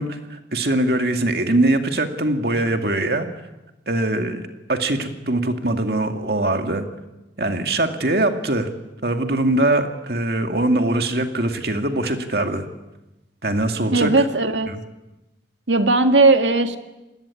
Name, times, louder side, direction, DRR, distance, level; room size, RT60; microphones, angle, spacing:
voice 1, 0.0-3.3 3.9-4.4 4.7-6.9 7.4-8.7 9.0-12.7 13.4-14.1 14.7-14.8, right 1 dB, 60° right, 5 dB, 2.4 m, -22 dB
voice 2, 13.9-14.7 15.7-16.8, right 3 dB, 85° right, 7 dB, 2.0 m, -17 dB
28.5 x 20.5 x 8.6 m, 1.0 s
head